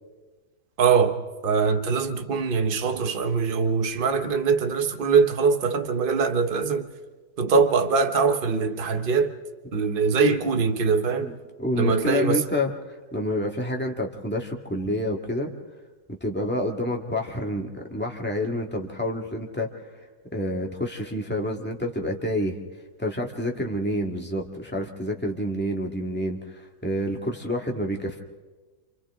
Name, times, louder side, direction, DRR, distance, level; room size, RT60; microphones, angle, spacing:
voice 1, 0.8-6.9 7.4-9.4 9.7-11.3 11.7-12.5, right 5 dB, 35° right, 1.1 m, -22 dB
voice 2, 11.6-15.5 16.1-19.8 20.3-22.6 23.0-28.2, left 1 dB, 5° left, 1.8 m, -28 dB
29.0 x 27.0 x 3.7 m
omnidirectional pair, 1.9 m